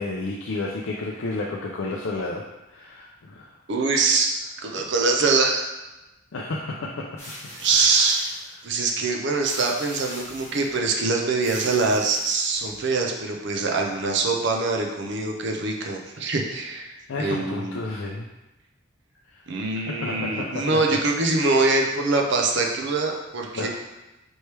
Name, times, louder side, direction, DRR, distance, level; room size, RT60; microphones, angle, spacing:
voice 1, 0.0-2.4 2.7-3.5 4.8-4.9 6.3-7.0 7.7-8.2 17.1-18.3 19.3-19.4 19.8-20.5 21.3-21.6 23.6-23.7, left 2 dB, 65° left, -2 dB, 0.4 m, -31 dB
voice 2, 3.7-4.3 4.6-5.7 7.6-8.3 8.6-17.8 19.5-23.7, right 3 dB, 55° right, 1 dB, 0.5 m, -23 dB
sound 1, 7.2-8.6 9.4-10.8 11.4-12.8, left 1 dB, 10° left, 1.3 m, -41 dB
4.4 x 3.1 x 3.3 m, 1.0 s
head